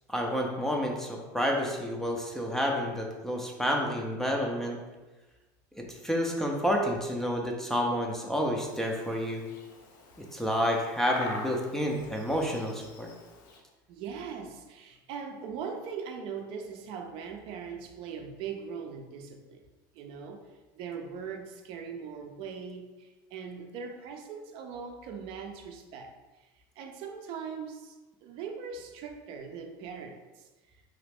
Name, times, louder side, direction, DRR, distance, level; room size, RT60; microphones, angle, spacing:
voice 1, 0.1-4.8 5.8-9.4 10.3-13.1, equal, 5° left, 0 dB, 0.4 m, -29 dB
Bird vocalization bird call bird song, 8.6-13.6, left 2 dB, 90° left, 0.6 m, -43 dB
voice 2, 13.9-19.6 19.9-20.5 20.7-26.1 26.4-26.5 26.8-28.0 28.2-30.5, right 6 dB, 55° right, 4 dB, 0.4 m, -40 dB
2.9 x 2.4 x 3.4 m, 1.2 s
supercardioid pair, 125°, 11 cm